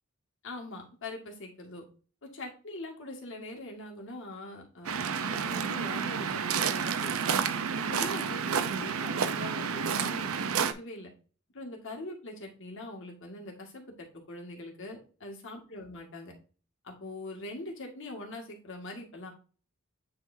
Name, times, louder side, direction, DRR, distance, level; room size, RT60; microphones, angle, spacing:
voice 1, 0.4-1.8 2.2-7.3 7.8-11.1 11.5-16.3 16.8-19.3, left 1 dB, 60° left, 0 dB, 2.0 m, -42 dB
Waves surf, 4.9-10.7, right 6 dB, 75° right, 0.6 m, -30 dB
9.6 x 3.7 x 2.7 m, 0.38 s
head